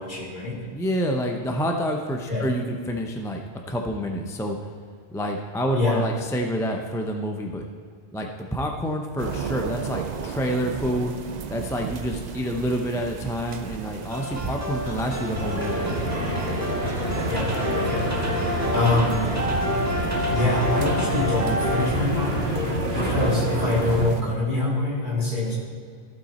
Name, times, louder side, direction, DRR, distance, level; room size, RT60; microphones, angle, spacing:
voice 1, 0.0-0.7 2.3-2.5 5.7-6.0 17.3-17.6 17.9-18.2 18.5-19.3 20.3-25.6, left 2 dB, 45° left, -6 dB, 3.1 m, -25 dB
voice 2, 0.7-3.4 3.7-4.6 5.1-7.7 8.1-11.1 11.5-15.9, equal, 5° left, 2 dB, 0.6 m, -28 dB
sound 1, 9.2-24.2, right 6 dB, 50° right, 0.6 m, -37 dB
sound 2, 14.1-21.9, left 1 dB, 15° right, 1.2 m, -29 dB
sound 3, 14.8-24.1, equal, 70° right, 2.0 m, -27 dB
14.5 x 6.1 x 4.2 m, 2.1 s
omnidirectional pair, 1.1 m